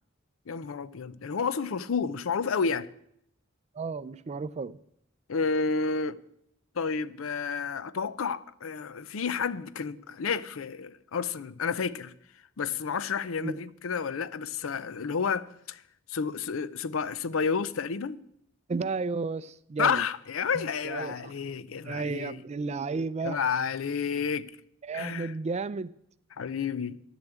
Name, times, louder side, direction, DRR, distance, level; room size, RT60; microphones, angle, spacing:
voice 1, 0.5-2.9 5.3-6.2 6.7-12.1 12.6-15.8 16.1-18.2 19.8-22.4 23.2-24.5 24.9-25.3 26.3-27.0, left 5 dB, 75° left, 0.5 m, -30 dB
voice 2, 3.7-4.8 13.4-13.6 18.7-20.0 20.5-21.3 21.8-23.4 24.8-25.9, right 4 dB, 30° right, 0.4 m, -33 dB
10.5 x 7.0 x 8.0 m
head